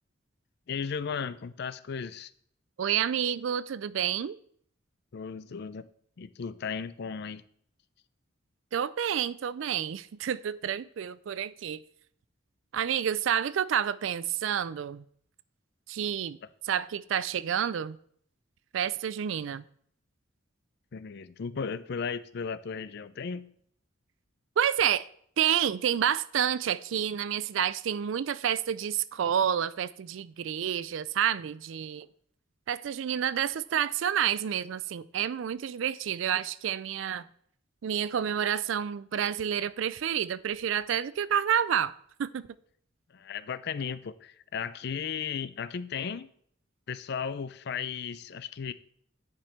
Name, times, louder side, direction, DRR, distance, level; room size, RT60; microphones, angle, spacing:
voice 1, 0.7-2.3 5.1-5.9 6.2-7.4 20.9-23.5 43.1-46.3 46.9-48.7, left 6 dB, 60° left, 0.5 m, -35 dB
voice 2, 2.8-4.4 8.7-11.8 12.7-15.0 15.9-16.4 16.6-18.0 18.7-19.6 24.6-25.1 25.4-32.1 32.7-37.3 37.8-41.9 42.2-42.5, right 9 dB, 70° right, 0.4 m, -29 dB
9.8 x 5.3 x 4.4 m
head